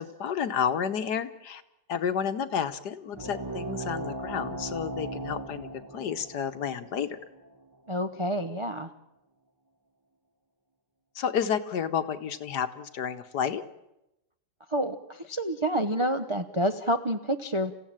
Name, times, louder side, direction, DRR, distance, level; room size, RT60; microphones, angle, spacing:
voice 1, 0.0-1.6 1.9-5.7 5.9-7.2 11.1-13.6, left 7 dB, 60° left, 10 dB, 1.5 m, -30 dB
sound 1, 3.1-8.2, right 2 dB, 15° right, 0.8 m, -38 dB
voice 2, 7.9-8.9 14.7-17.7, equal, 40° right, 7 dB, 0.4 m, -28 dB
28.5 x 16.0 x 8.9 m, 0.92 s
omnidirectional pair, 2.2 m